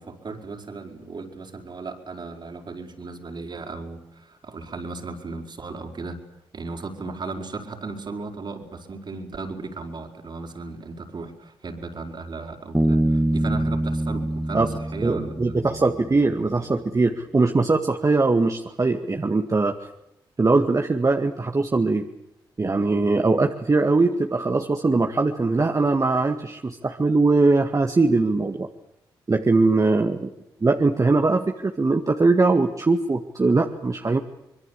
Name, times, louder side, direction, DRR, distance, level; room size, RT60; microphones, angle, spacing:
voice 1, 0.0-6.2 6.5-15.6, right 3 dB, 55° right, 4 dB, 5.0 m, -36 dB
Bass guitar, 12.7-16.2, right 1 dB, 10° right, 1.9 m, -25 dB
voice 2, 15.0-19.7 20.4-22.0 22.6-28.7 29.3-30.3 30.6-34.2, right 3 dB, 35° right, 4 dB, 2.0 m, -21 dB
25.0 x 22.0 x 8.5 m, 0.86 s
supercardioid pair, 45°, 9 cm